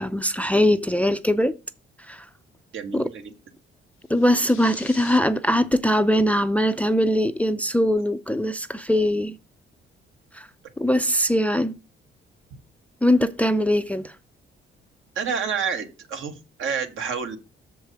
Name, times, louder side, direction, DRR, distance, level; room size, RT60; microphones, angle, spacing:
voice 1, 0.0-1.6 2.1-2.3 2.9-3.1 4.1-9.3 10.3-10.5 10.8-11.8 13.0-14.1, equal, 5° left, 0.4 m, -21 dB
voice 2, 2.7-3.3 15.1-17.4, right 6 dB, 70° right, 1.5 m, -29 dB
sound 1, 4.0-5.2, left 12 dB, 90° left, 0.7 m, -43 dB
6.6 x 4.7 x 6.5 m
cardioid pair, 115°, 21 cm